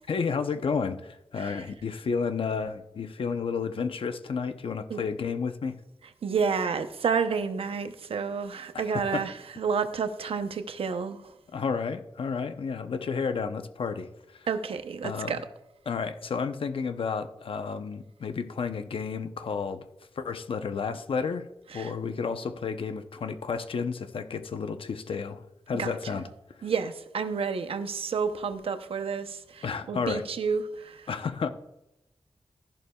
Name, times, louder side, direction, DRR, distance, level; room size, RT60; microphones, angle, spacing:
voice 1, 0.1-5.8 8.7-9.2 11.5-14.5 15.0-15.4 15.9-19.9 20.2-21.5 21.7-26.3 26.6-26.7 29.6-30.3 31.1-31.5, left 5 dB, 70° left, 0.8 m, -31 dB
voice 2, 6.2-11.3 14.5-15.4 21.7-21.9 25.8-26.2 26.6-31.1, right 5 dB, 90° right, 0.8 m, -30 dB
13.5 x 11.0 x 2.3 m
wide cardioid pair, 115°, 9 cm